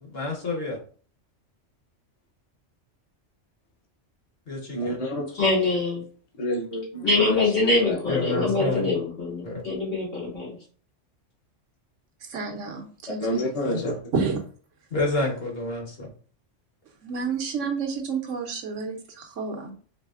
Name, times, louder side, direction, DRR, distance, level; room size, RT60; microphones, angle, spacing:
voice 1, 0.1-0.8 4.5-5.0 8.1-8.9 9.4-9.6 13.6-14.0 14.9-16.1, left 2 dB, 55° left, 0 dB, 1.5 m, -29 dB
voice 2, 4.7-5.3 6.4-8.2 13.2-13.9, equal, 35° left, 0 dB, 0.8 m, -29 dB
voice 3, 5.3-6.0 7.0-10.5, left 3 dB, 80° left, -7 dB, 2.8 m, -24 dB
voice 4, 12.2-13.5 14.1-14.4 17.0-19.7, right 5 dB, 80° right, 4 dB, 1.1 m, -30 dB
4.8 x 3.3 x 2.4 m, 0.43 s
omnidirectional pair, 1.3 m